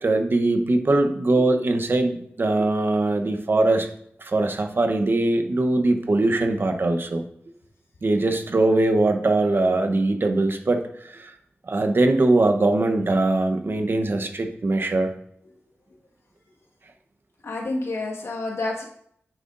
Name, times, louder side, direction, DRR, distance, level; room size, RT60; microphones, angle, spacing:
voice 1, 0.0-3.9 4.2-7.2 8.0-11.3 11.7-15.1, right 2 dB, 55° right, 6 dB, 0.9 m, -21 dB
voice 2, 17.4-18.8, left 2 dB, 75° left, -1 dB, 1.6 m, -29 dB
9.0 x 7.9 x 2.6 m, 0.69 s
wide cardioid pair, 70°, 5 cm